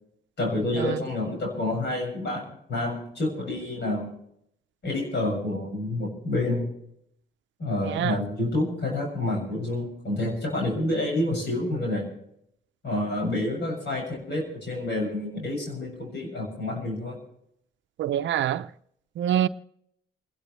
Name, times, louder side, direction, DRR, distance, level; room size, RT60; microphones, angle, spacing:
voice 1, 0.4-4.1 4.8-6.7 7.6-12.1 12.8-17.2, left 1 dB, 60° left, 7.0 m, -28 dB
voice 2, 7.8-8.2 18.0-18.7 19.2-19.5, right 11 dB, 70° right, 0.6 m, -25 dB
28.5 x 12.0 x 3.3 m
cardioid pair, 90°, 20 cm